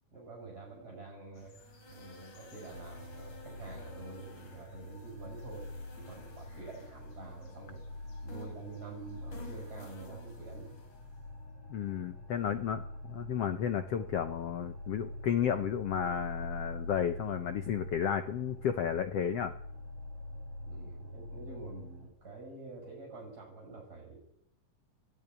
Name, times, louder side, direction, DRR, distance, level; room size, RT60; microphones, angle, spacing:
voice 1, 0.1-1.5 1.9-7.8 8.2-10.7 20.6-24.2, right 3 dB, 25° right, -2 dB, 7.5 m, -47 dB
sound 1, 1.3-11.3, left 2 dB, 55° left, 5.0 m, -54 dB
sound 2, 2.7-22.1, left 1 dB, 30° left, 8.7 m, -45 dB
voice 2, 11.7-19.5, left 8 dB, 85° left, 9 dB, 1.3 m, -33 dB
23.5 x 14.5 x 9.8 m, 0.76 s
omnidirectional pair, 4.2 m